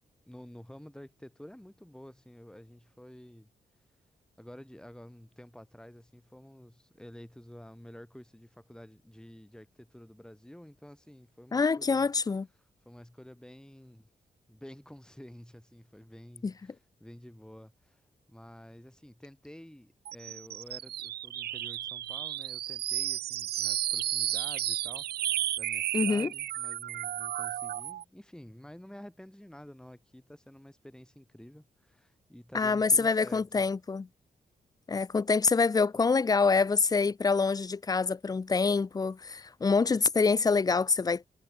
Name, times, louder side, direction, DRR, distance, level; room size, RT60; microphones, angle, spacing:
voice 1, 0.3-3.5 4.4-12.1 12.9-14.1 14.5-18.0 18.3-25.1 25.6-33.6, equal, 5° left, 4.2 m, -50 dB
voice 2, 11.5-12.5 16.4-16.5 25.9-26.3 32.5-34.1 34.9-41.3, left 4 dB, 25° left, 0.4 m, -26 dB
sound 1, 20.1-28.0, right 12 dB, 90° right, 0.6 m, -33 dB
cardioid pair, 70°, 16 cm